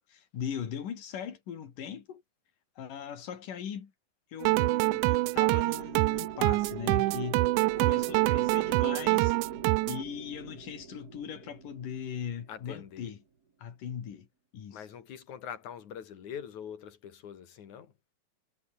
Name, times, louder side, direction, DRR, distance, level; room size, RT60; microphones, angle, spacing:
voice 1, 0.1-2.2 2.8-3.9 4.3-9.4 9.9-13.2 13.6-14.3 14.5-14.9, left 8 dB, 90° left, 4.2 m, -39 dB
sound 1, 4.4-10.0, right 21 dB, 80° right, 1.9 m, -26 dB
sound 2, 4.6-13.0, right 5 dB, 35° right, 2.2 m, -44 dB
voice 2, 12.5-13.1 14.7-17.9, left 8 dB, 65° left, 3.6 m, -43 dB
omnidirectional pair, 3.7 m